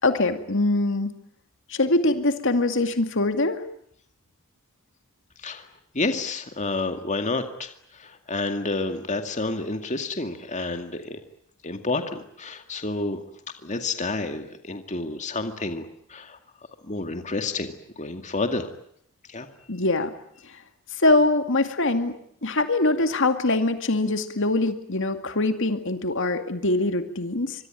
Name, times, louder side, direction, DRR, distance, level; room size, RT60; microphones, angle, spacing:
voice 1, 0.0-1.1 1.7-3.6 19.7-20.1 20.5-20.6 20.9-27.7, left 2 dB, 60° left, 8 dB, 2.3 m, -23 dB
voice 2, 5.9-11.2 11.6-13.2 13.6-16.4 16.8-18.7 19.3-19.5, left 3 dB, 35° left, 7 dB, 2.2 m, -29 dB
25.5 x 23.5 x 9.1 m, 0.69 s
head